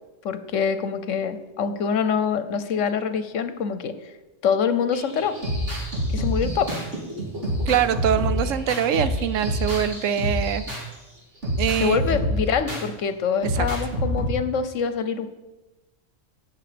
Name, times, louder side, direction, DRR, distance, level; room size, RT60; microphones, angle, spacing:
voice 1, 0.2-3.9 4.4-5.3 6.1-6.7 11.8-15.3, left 6 dB, 80° left, 11 dB, 1.2 m, -25 dB
sound 1, 4.9-10.9 11.4-12.9 13.4-14.3, equal, 65° right, 3.0 m, -27 dB
voice 2, 7.7-10.7 11.6-12.2 13.5-13.7, right 9 dB, 85° right, 13 dB, 1.1 m, -24 dB
17.0 x 6.6 x 5.1 m, 1.1 s
omnidirectional pair, 1.3 m